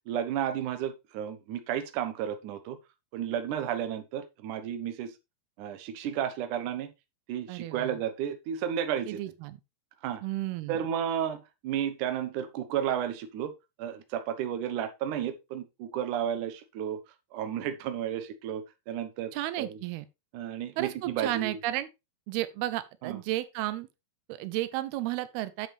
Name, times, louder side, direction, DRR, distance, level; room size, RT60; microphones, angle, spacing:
voice 1, 0.1-2.8 3.1-5.1 5.6-6.9 7.3-9.2 10.0-10.2 10.7-13.5 13.8-17.0 17.3-19.3 19.6-19.8 20.3-21.6 23.0-23.2, right 9 dB, 65° right, 2.3 m, -32 dB
voice 2, 7.5-8.0 9.1-9.6 10.2-10.8 19.3-20.1 20.8-21.9 22.3-23.9 24.3-25.7, right 15 dB, 90° right, 2.7 m, -33 dB
9.2 x 7.5 x 3.3 m
omnidirectional pair, 4.4 m